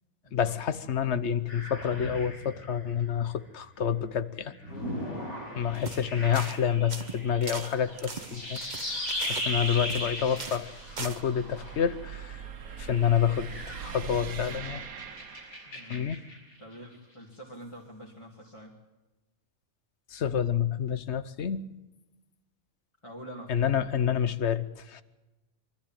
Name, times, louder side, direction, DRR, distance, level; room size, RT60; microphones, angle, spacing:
voice 1, 0.3-4.5 5.5-8.6 9.2-10.7 11.0-12.4 12.8-13.5 13.8-14.8 15.9-16.2 20.1-21.7 23.5-25.0, left 8 dB, 55° left, 15 dB, 1.1 m, -28 dB
sound 1, 1.5-3.3 4.5-12.1 12.7-16.5, left 1 dB, 85° left, 5.8 m, -38 dB
sound 2, 4.7-16.1, right 7 dB, 80° right, 1.5 m, -45 dB
voice 2, 5.4-5.8 9.2-9.6 15.7-16.2 16.6-18.8 23.0-23.5, equal, 20° left, -3 dB, 2.5 m, -47 dB
sound 3, 5.7-6.0 6.3-6.6 6.9-10.1 10.4-10.7 11.0-11.2, right 5 dB, 35° right, 1.0 m, -39 dB
24.0 x 13.5 x 8.9 m, 1.1 s
omnidirectional pair, 1.5 m